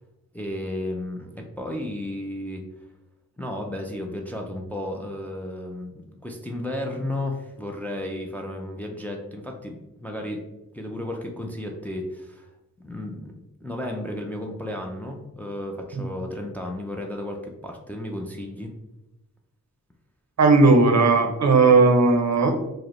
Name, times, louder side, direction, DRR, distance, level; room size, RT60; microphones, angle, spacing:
voice 1, 0.3-2.6 3.4-10.4 10.7-12.5 12.8-13.3 13.6-18.7, left 1 dB, 5° left, 1 dB, 0.4 m, -33 dB
voice 2, 20.4-22.5, right 3 dB, 55° right, 5 dB, 0.5 m, -16 dB
4.8 x 2.0 x 3.0 m, 0.93 s
wide cardioid pair, 130°, 32 cm